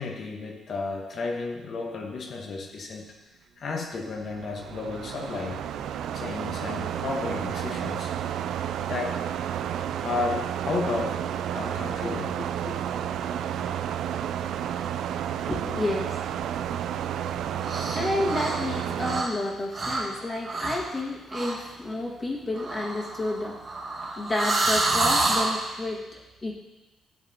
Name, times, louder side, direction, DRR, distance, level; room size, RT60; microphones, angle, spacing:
voice 1, 0.0-3.1 3.6-5.6 6.1-8.1 8.9-9.2 10.0-11.2 11.5-12.7 13.5-13.7, left 4 dB, 50° left, 2 dB, 1.3 m, -33 dB
sound 1, 4.2-19.2, right 9 dB, 80° right, 0.3 m, -31 dB
voice 2, 15.5-16.3 17.9-23.7 24.2-26.6, left 2 dB, 30° left, -2 dB, 1.8 m, -30 dB
sound 2, 17.6-18.0 18.3-19.4 19.7-20.0 20.4-20.9 21.3-21.6 22.5-25.6, right 2 dB, 50° right, 1.8 m, -27 dB
11.0 x 7.2 x 2.9 m, 1.1 s
cardioid pair, 90°, 0 cm